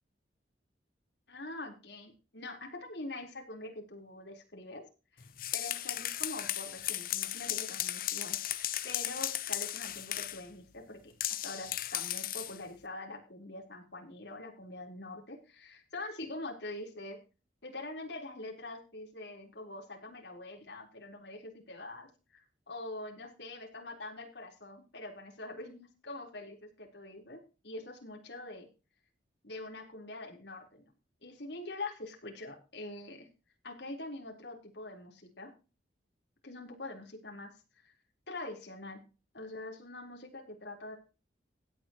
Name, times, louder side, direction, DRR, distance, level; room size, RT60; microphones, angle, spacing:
voice 1, 1.3-4.8 5.1-8.4 8.8-11.1 11.4-17.2 17.6-28.7 29.4-30.8 31.2-33.3 33.6-35.5 36.4-37.5 37.8-37.9 38.3-39.0 39.3-40.9, left 2 dB, 70° left, 1 dB, 3.9 m, -44 dB
sound 1, 5.2-10.4 11.2-12.6, left 13 dB, 50° left, 0.9 m, -36 dB
16.5 x 9.7 x 3.0 m, 0.32 s
head